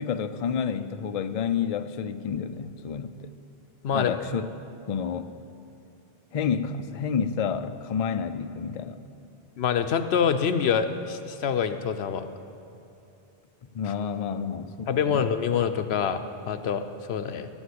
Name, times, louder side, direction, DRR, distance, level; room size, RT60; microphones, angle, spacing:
voice 1, 0.0-3.3 3.9-4.5 4.9-5.3 6.3-9.0 13.7-15.2, left 7 dB, 45° left, 10 dB, 0.5 m, -29 dB
voice 2, 3.8-4.1 9.6-12.3 14.9-17.5, left 7 dB, 90° left, 9 dB, 1.0 m, -26 dB
14.5 x 7.2 x 8.5 m, 2.7 s
omnidirectional pair, 1.0 m